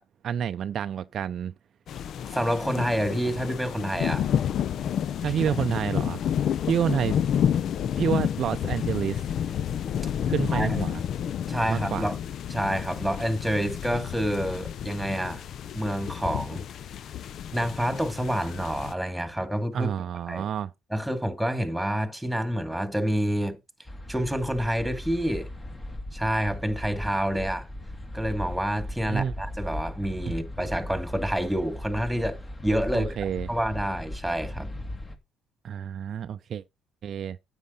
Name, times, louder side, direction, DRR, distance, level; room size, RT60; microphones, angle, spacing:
voice 1, 0.2-1.5 5.2-6.2 6.7-7.2 8.0-9.2 10.3-11.0 11.7-12.1 19.7-20.7 29.0-29.3 30.2-30.3 32.9-33.5 35.6-36.6 37.0-37.4, right 8 dB, 55° right, 0.5 m, -28 dB
sound 1, 1.9-18.9, left 9 dB, 60° left, 0.5 m, -30 dB
voice 2, 2.3-4.3 5.3-5.4 10.0-10.1 10.5-10.8 11.5-12.2 12.5-15.4 15.7-16.6 17.5-19.9 20.3-20.5 20.9-23.6 24.1-25.5 26.1-27.7 28.1-33.1 33.5-34.7, equal, ahead, 2.5 m, -28 dB
sound 2, 23.9-35.2, left 1 dB, 25° left, 2.2 m, -37 dB
9.4 x 7.7 x 4.1 m
supercardioid pair, 75°, 0 cm